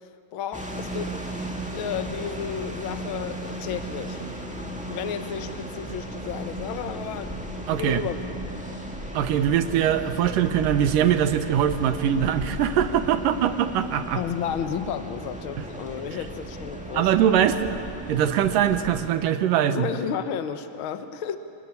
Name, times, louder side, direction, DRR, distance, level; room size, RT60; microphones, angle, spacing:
voice 1, 0.3-1.2 1.6-4.2 4.9-8.2 14.1-17.1 19.7-21.4, left 8 dB, 85° left, 9 dB, 1.1 m, -32 dB
sound 1, 0.5-19.1, right 1 dB, 5° right, 0.8 m, -35 dB
voice 2, 7.7-8.0 9.1-14.2 15.6-15.7 16.9-17.8 18.1-19.9, right 9 dB, 75° right, 9 dB, 2.7 m, -22 dB
27.0 x 20.0 x 9.9 m, 2.5 s
omnidirectional pair, 4.0 m